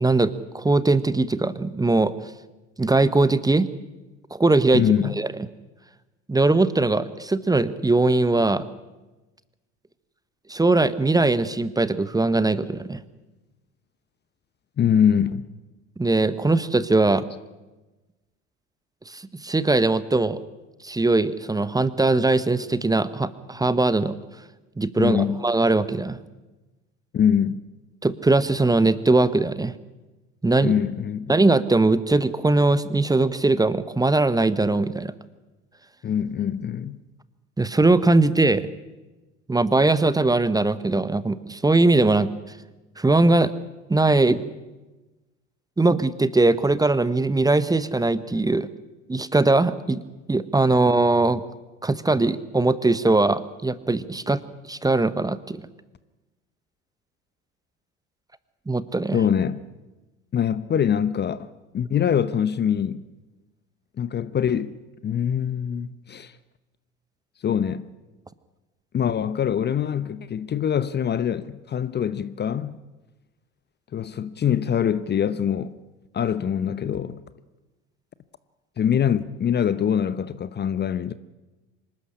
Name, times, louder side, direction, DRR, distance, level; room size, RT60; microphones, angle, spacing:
voice 1, 0.0-2.3 2.8-3.7 4.3-4.8 5.2-5.3 6.3-8.7 10.5-13.0 16.0-17.3 19.1-20.4 20.8-24.1 24.8-26.2 28.0-29.7 30.4-30.7 31.3-35.1 37.6-38.7 39.5-42.3 43.0-43.5 43.9-44.4 45.8-48.7 49.1-50.0 50.3-51.4 51.8-54.4 54.7-55.7 58.7-59.2, right 2 dB, 10° right, 1.0 m, -20 dB
voice 2, 4.7-5.1 14.8-15.5 25.0-25.4 27.1-27.6 30.6-31.3 36.0-37.0 59.1-59.6 60.3-63.0 64.0-64.8 65.0-66.3 67.4-67.8 68.9-72.8 73.9-75.8 76.1-77.2 78.8-81.1, left 8 dB, 30° left, 0.9 m, -24 dB
25.0 x 13.5 x 10.0 m
figure-of-eight pair, 65°, 37 cm